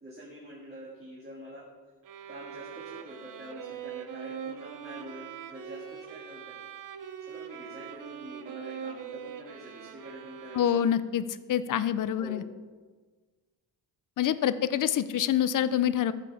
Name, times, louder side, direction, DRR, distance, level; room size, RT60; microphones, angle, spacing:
voice 1, 0.0-1.7 2.3-6.6 7.3-10.9 12.0-12.5, equal, 25° right, -6 dB, 2.0 m, -46 dB
sound 1, 2.0-11.2, right 8 dB, 55° right, 0.8 m, -42 dB
voice 2, 10.5-11.2 11.5-12.4 14.2-16.1, left 10 dB, 55° left, 14 dB, 0.6 m, -26 dB
14.5 x 5.3 x 6.8 m, 1.4 s
cardioid pair, 155°, 39 cm